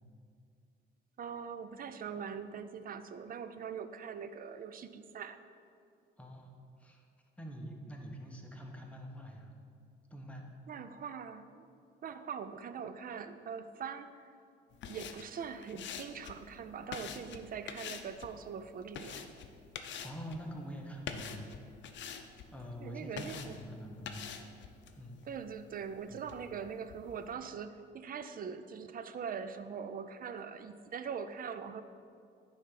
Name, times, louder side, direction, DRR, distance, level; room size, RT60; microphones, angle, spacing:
voice 1, 1.2-5.4 10.7-11.6 12.0-14.3 14.9-19.3 22.8-23.6 25.3-31.8, right 6 dB, 45° right, 11 dB, 0.5 m, -42 dB
voice 2, 6.2-6.5 6.8-7.0 7.4-9.5 10.1-10.5 20.0-21.5 22.5-24.3 25.0-25.2 26.1-26.5, equal, 5° left, 0 dB, 1.1 m, -45 dB
sound 1, 14.7-27.3, left 7 dB, 65° left, 0.6 m, -47 dB
9.3 x 3.5 x 5.7 m, 2.4 s
cardioid pair, 90°, 20 cm